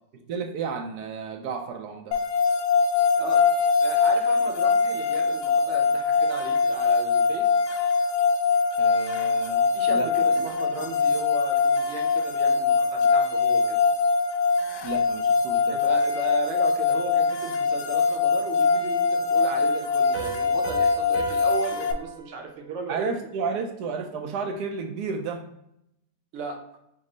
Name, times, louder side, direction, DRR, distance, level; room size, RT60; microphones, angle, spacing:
voice 1, 0.1-2.2 8.8-10.3 14.8-15.8 22.9-25.4, right 5 dB, 80° right, 3 dB, 1.1 m, -32 dB
sound 1, 2.1-21.9, left 5 dB, 75° left, 1.0 m, -23 dB
voice 2, 3.2-3.5 3.8-7.5 9.7-13.8 15.7-23.1 26.3-26.8, right 4 dB, 55° right, 2 dB, 0.9 m, -36 dB
Piano, 20.1-23.6, right 5 dB, 40° left, 0.9 m, -37 dB
5.3 x 2.0 x 3.7 m, 0.79 s
omnidirectional pair, 1.7 m